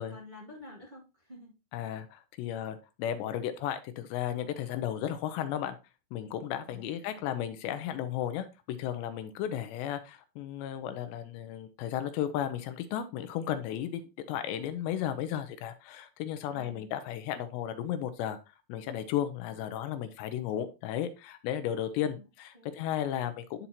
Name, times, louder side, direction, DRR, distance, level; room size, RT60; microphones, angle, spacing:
voice 1, 0.0-1.5 6.7-7.2 16.5-16.9 22.0-22.3 22.5-22.7, left 1 dB, 30° right, -4 dB, 0.8 m, -50 dB
voice 2, 1.7-5.8 6.1-18.4 18.7-23.7, left 10 dB, 80° left, 10 dB, 2.9 m, -34 dB
11.5 x 4.2 x 2.9 m, 0.28 s
omnidirectional pair, 5.2 m